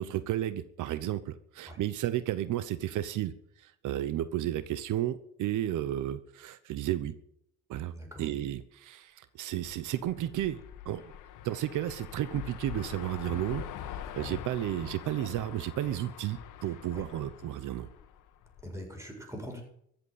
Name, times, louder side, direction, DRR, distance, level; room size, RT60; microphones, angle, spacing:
voice 1, 0.0-3.3 3.6-7.1 7.7-11.1 11.4-13.6 13.9-17.9, right 12 dB, 80° right, 13 dB, 1.0 m, -33 dB
voice 2, 7.9-8.2 16.9-17.0 18.6-19.6, equal, 10° right, 1 dB, 7.5 m, -42 dB
sound 1, 9.5-18.8, left 9 dB, 90° left, 1.5 m, -44 dB
15.0 x 8.3 x 9.4 m, 0.69 s
cardioid pair, 90°, 30 cm